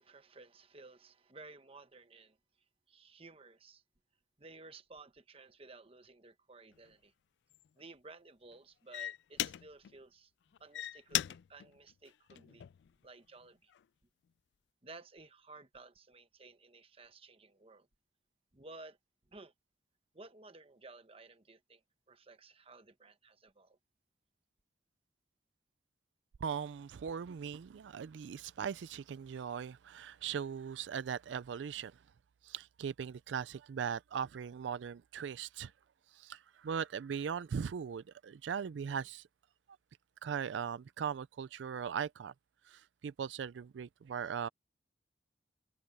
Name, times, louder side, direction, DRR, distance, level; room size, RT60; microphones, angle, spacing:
voice 1, 0.0-2.4 2.9-3.8 4.4-7.1 7.7-10.3 10.6-12.6 13.0-13.7 14.8-17.9 18.5-19.0 19.3-19.5 20.1-21.8 22.1-23.8, right 3 dB, 30° right, 1.1 m, -55 dB
sound 1, 6.7-6.9 7.5-7.8 8.5-8.6 8.9-9.9 10.5-12.9 13.4-13.8, left 13 dB, 70° left, 0.3 m, -38 dB
voice 2, 26.4-32.0 32.4-35.7 36.1-39.3 40.2-42.3 42.6-44.5, right 7 dB, 80° right, 0.4 m, -39 dB
head